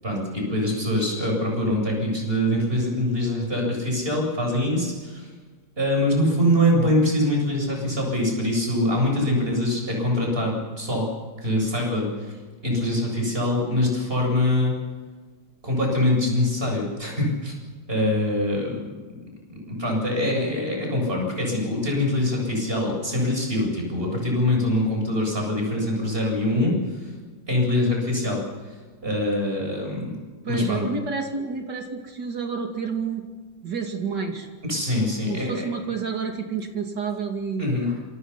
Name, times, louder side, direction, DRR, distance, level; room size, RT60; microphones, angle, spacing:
voice 1, 0.0-5.3 5.8-11.1 11.4-12.4 12.6-14.7 15.6-17.5 17.9-18.8 19.7-27.1 27.5-28.4 29.0-30.2 30.5-30.8 34.6-35.7 37.6-37.9, left 1 dB, 30° right, 1 dB, 8.2 m, -24 dB
voice 2, 30.4-33.3 33.6-34.5 35.3-37.7, right 5 dB, 60° right, 3 dB, 3.1 m, -29 dB
27.5 x 25.0 x 5.8 m, 1.4 s
omnidirectional pair, 2.1 m